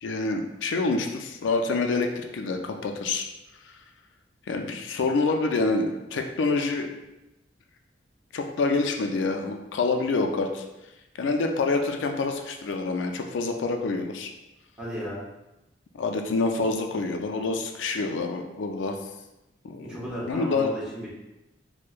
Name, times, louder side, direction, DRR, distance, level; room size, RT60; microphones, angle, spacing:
voice 1, 0.0-3.3 4.5-6.9 8.3-10.6 11.2-14.3 15.9-19.0 19.6-20.0 20.3-20.7, left 3 dB, 90° left, 4 dB, 0.4 m, -27 dB
voice 2, 14.8-15.2 19.8-21.1, equal, 5° right, -7 dB, 0.9 m, -34 dB
4.4 x 2.1 x 2.4 m, 0.96 s
head